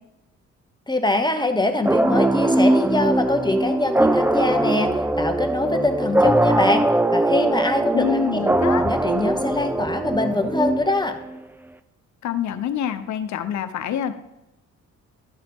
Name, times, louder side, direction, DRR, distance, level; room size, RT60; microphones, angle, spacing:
voice 1, 0.9-6.8 7.1-8.4 8.8-11.2, left 2 dB, 15° left, 6 dB, 0.9 m, -23 dB
sound 1, 1.8-11.3, right 1 dB, 5° right, 0.4 m, -21 dB
voice 2, 7.9-8.9 12.2-14.1, left 9 dB, 70° left, 10 dB, 0.9 m, -26 dB
12.5 x 4.1 x 5.3 m, 0.93 s
cardioid pair, 90°, 30 cm